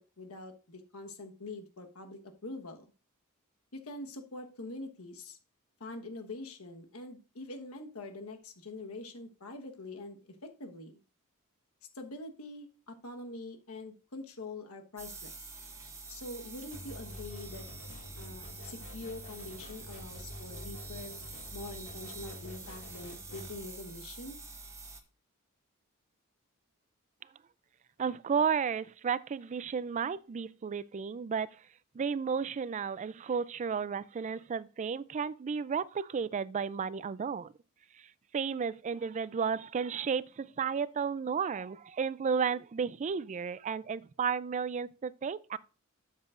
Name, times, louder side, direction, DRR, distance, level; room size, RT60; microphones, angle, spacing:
voice 1, 0.0-2.9 3.7-5.4 5.8-11.0 11.9-15.5 16.1-17.7 18.2-21.2 21.5-24.4, left 2 dB, 75° left, 1.3 m, -44 dB
sound 1, 15.0-25.0, right 3 dB, 15° right, 1.1 m, -47 dB
sound 2, 16.7-23.6, left 1 dB, 55° left, 2.0 m, -48 dB
voice 2, 28.0-31.5 31.9-37.5 38.0-45.6, right 6 dB, 35° right, 0.3 m, -33 dB
12.0 x 7.4 x 2.5 m
head